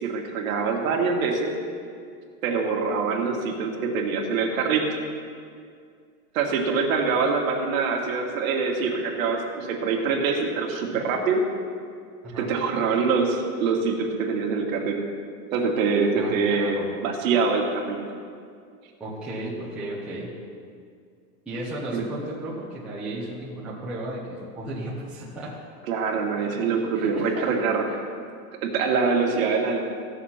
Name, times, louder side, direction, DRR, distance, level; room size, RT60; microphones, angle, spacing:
voice 1, 0.0-1.5 2.4-5.0 6.3-11.4 12.4-15.0 15.5-18.0 21.9-22.1 25.9-28.0 28.6-29.8, right 4 dB, 55° right, 1 dB, 1.8 m, -24 dB
voice 2, 16.2-16.9 19.0-20.3 21.5-25.6 26.4-27.5, right 1 dB, ahead, -8 dB, 0.8 m, -34 dB
15.5 x 6.5 x 5.7 m, 2.2 s
supercardioid pair, 180°, 48 cm